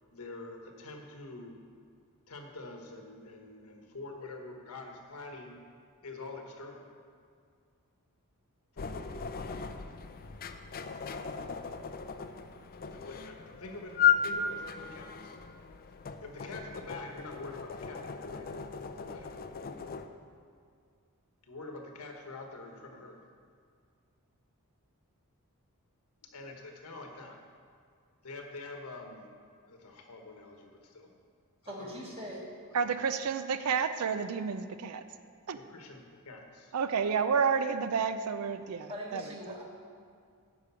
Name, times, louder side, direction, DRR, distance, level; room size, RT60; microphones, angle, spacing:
voice 1, 0.1-1.6 2.3-5.6 6.0-6.9 8.7-9.3 12.6-15.3 16.2-18.5 18.9-19.3 21.4-23.2 26.3-27.4 28.2-29.3 29.7-31.1 31.6-32.0 32.7-33.0 35.5-36.7, left 3 dB, 75° left, 3 dB, 1.2 m, -46 dB
sound 1, 8.8-20.1, left 7 dB, 40° left, 0.4 m, -35 dB
voice 2, 31.6-32.5 38.9-39.6, equal, 25° right, -3 dB, 1.7 m, -41 dB
voice 3, 32.7-35.0 35.5-35.6 36.7-39.2, right 6 dB, 75° right, 11 dB, 0.4 m, -30 dB
9.7 x 5.2 x 6.9 m, 2.2 s
head